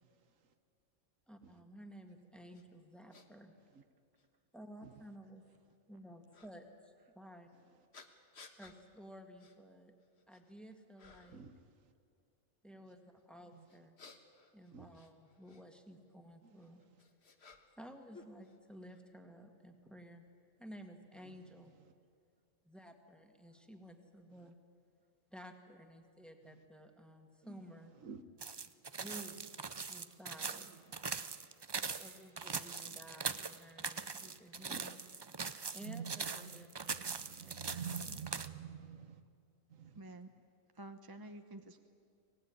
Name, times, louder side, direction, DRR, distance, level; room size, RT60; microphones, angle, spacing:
voice 1, 0.0-0.3 1.4-1.5 3.7-3.8 4.8-4.9 11.3-11.6 13.5-13.7 14.7-14.9 16.4-16.5 21.2-21.9 24.4-24.5 26.6-26.7 27.4-27.6 27.9-28.2 30.5-31.2 34.5-34.9 35.8-39.2 39.7-40.0, right 7 dB, 80° right, 10 dB, 1.5 m, -49 dB
voice 2, 1.3-3.5 4.5-5.4 5.9-7.5 8.6-9.9 10.3-11.4 12.6-14.0 14.5-16.8 17.8-20.3 20.6-21.7 22.6-24.6 25.3-27.9 29.0-29.5 29.9-30.7 32.0-35.0 35.7-37.1 37.4-38.2, equal, ahead, 4 dB, 1.9 m, -54 dB
sound 1, 2.5-2.6 3.1-3.3 4.2-4.3 6.3-6.5 7.9-8.8 9.4-9.6 10.0-10.5 11.0-11.5 13.7-15.6 16.6-17.9 18.1-19.0, left 4 dB, 55° left, 1.7 m, -59 dB
sound 2, 28.4-38.5, right 5 dB, 40° right, 0.3 m, -42 dB
voice 3, 39.9-40.3 40.7-41.8, right 2 dB, 20° right, 7 dB, 0.8 m, -50 dB
24.5 x 19.0 x 9.7 m, 2.3 s
omnidirectional pair, 1.3 m